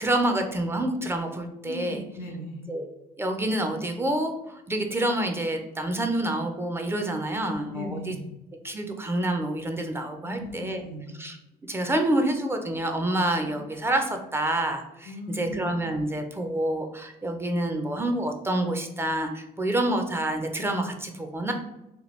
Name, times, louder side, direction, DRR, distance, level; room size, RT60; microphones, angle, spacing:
voice 1, 0.0-2.0 2.7-2.9 3.2-8.0 8.6-10.8 11.2-11.4 11.7-21.5, right 1 dB, 15° right, 4 dB, 0.4 m, -27 dB
voice 2, 1.6-2.7 7.3-8.3 10.2-11.2 13.4-13.5 15.0-15.8, left 1 dB, 85° left, 3 dB, 0.7 m, -38 dB
2.9 x 2.2 x 3.0 m, 0.89 s
cardioid pair, 110°, 17 cm